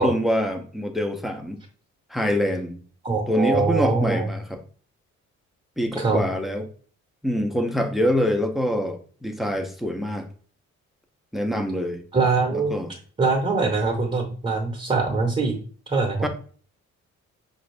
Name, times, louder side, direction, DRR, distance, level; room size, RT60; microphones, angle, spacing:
voice 1, 0.0-1.6 2.1-2.8 3.3-4.6 5.8-6.7 7.2-10.2 11.3-12.0 12.5-12.9 16.2-16.3, equal, ahead, 5 dB, 0.6 m, -25 dB
voice 2, 3.0-4.3 6.0-6.2 12.1-12.8 13.2-15.6 15.9-16.2, right 3 dB, 20° right, 1 dB, 0.9 m, -23 dB
4.8 x 2.7 x 3.2 m, 0.44 s
cardioid pair, 90°, 30 cm